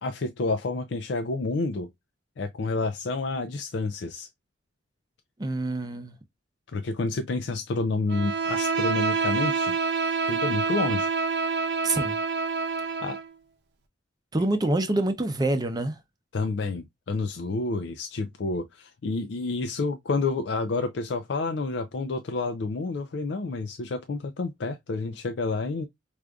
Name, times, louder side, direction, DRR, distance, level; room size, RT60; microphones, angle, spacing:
voice 1, 0.0-1.9 2.4-4.3 6.7-9.8 10.3-11.1 13.0-13.2 16.3-25.9, left 3 dB, 65° left, 0.4 m, -29 dB
voice 2, 5.4-6.2 11.8-12.2 14.3-16.0, right 2 dB, 20° right, 0.5 m, -26 dB
Bowed string instrument, 8.1-13.3, right 4 dB, 60° right, 0.7 m, -27 dB
4.8 x 2.5 x 2.2 m
head